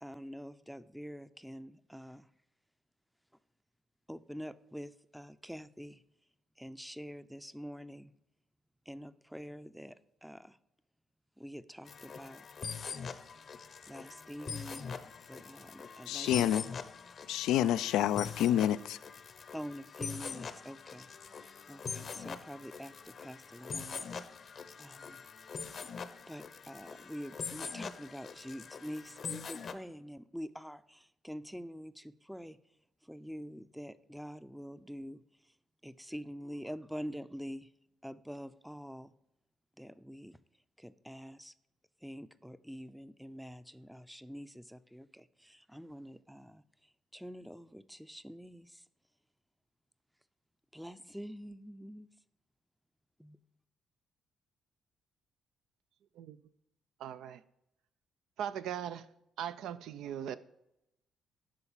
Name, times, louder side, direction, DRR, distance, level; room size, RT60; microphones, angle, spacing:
voice 1, 0.0-2.3 4.1-6.0 6.6-8.1 8.9-9.9 10.2-10.6 11.4-12.4 13.9-16.3 19.5-21.1 21.7-24.1 24.8-25.2 26.3-32.6 33.0-35.2 35.8-37.7 38.0-39.1 39.8-40.4 40.8-41.5 42.0-46.6 47.1-48.8 50.7-52.1 53.2-53.4, equal, ahead, 0.5 m, -46 dB
sound 1, 11.9-29.7, left 6 dB, 50° left, 0.8 m, -43 dB
voice 2, 16.1-16.6 17.3-19.0, left 11 dB, 90° left, 0.3 m, -28 dB
voice 3, 57.0-57.4 58.4-59.1 59.4-60.4, right 9 dB, 85° right, 0.5 m, -39 dB
11.5 x 4.0 x 7.2 m
cardioid pair, 90°, 0 cm